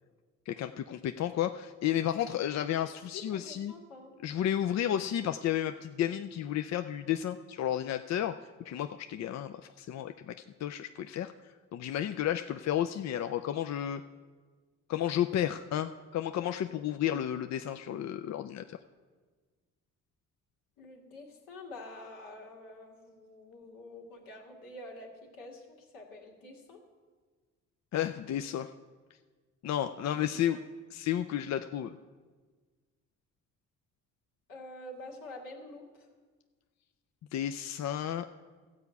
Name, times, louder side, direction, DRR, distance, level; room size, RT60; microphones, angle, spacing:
voice 1, 0.5-3.7 4.2-8.4 8.6-10.4 10.6-11.3 11.7-14.0 14.9-18.8 27.9-28.7 29.6-30.6 30.9-32.0 37.3-38.3, left 11 dB, 55° left, 8 dB, 0.5 m, -32 dB
voice 2, 3.1-4.1 20.8-26.8 30.0-30.6 34.5-36.1, left 2 dB, 80° left, -1 dB, 2.0 m, -47 dB
13.5 x 4.8 x 8.1 m, 1.4 s
supercardioid pair, 65°, 32 cm